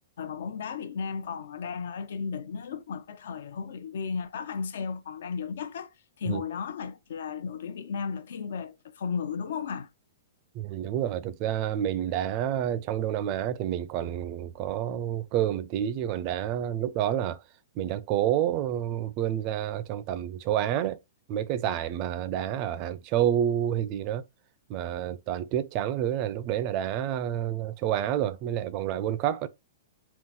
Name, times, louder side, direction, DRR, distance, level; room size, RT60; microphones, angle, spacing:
voice 1, 0.2-5.9 6.2-9.9, left 6 dB, 70° left, 0.7 m, -34 dB
voice 2, 10.5-17.4 17.8-21.0 21.3-24.2 24.7-29.5, right 11 dB, 35° right, 0.4 m, -29 dB
3.7 x 2.3 x 4.2 m
hypercardioid pair, 150°, 0 cm